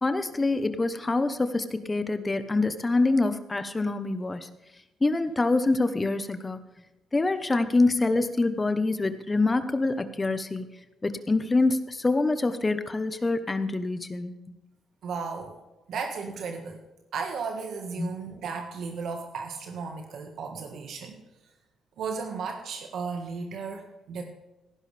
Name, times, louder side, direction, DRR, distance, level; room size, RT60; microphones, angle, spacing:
voice 1, 0.0-4.4 5.0-6.6 7.1-10.6 11.0-14.3 18.0-18.2, left 3 dB, 20° left, 11 dB, 1.0 m, -25 dB
voice 2, 15.0-15.6 15.9-16.8 17.1-21.2 22.0-24.2, right 5 dB, 70° right, 4 dB, 1.6 m, -35 dB
17.5 x 10.5 x 3.4 m, 1.0 s
cardioid pair, 90°, 0 cm